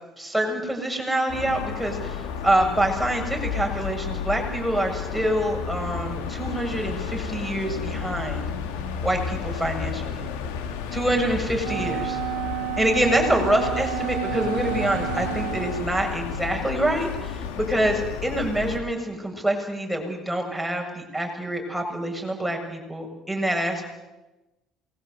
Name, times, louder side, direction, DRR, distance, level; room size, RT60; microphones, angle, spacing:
voice 1, 0.2-8.4 9.0-10.2 10.9-12.2 12.8-23.9, right 1 dB, ahead, 1 dB, 7.4 m, -26 dB
sound 1, 1.3-18.8, left 7 dB, 90° left, 3.0 m, -32 dB
Wind instrument woodwind instrument, 11.6-15.9, right 20 dB, 85° right, 1.1 m, -31 dB
27.5 x 21.0 x 8.2 m, 1.0 s
supercardioid pair, 85°, 0 cm